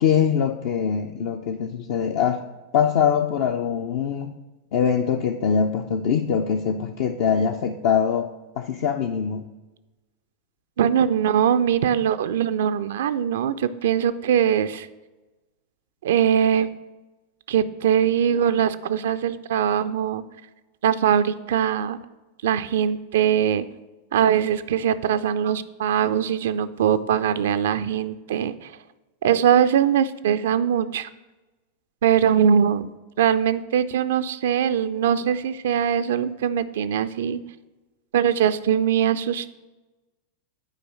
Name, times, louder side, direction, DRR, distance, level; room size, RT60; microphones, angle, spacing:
voice 1, 0.0-2.4 2.7-4.3 4.7-8.3 8.6-9.4, left 7 dB, 50° left, 5 dB, 0.5 m, -23 dB
voice 2, 10.8-14.9 16.0-16.7 17.5-20.2 20.8-22.0 22.4-23.7 24.1-28.7 29.2-31.1 32.0-32.9 33.2-37.4 38.1-39.5, right 9 dB, 60° right, 12 dB, 0.4 m, -21 dB
9.0 x 4.7 x 6.2 m, 1.1 s
figure-of-eight pair, 90°, 0 cm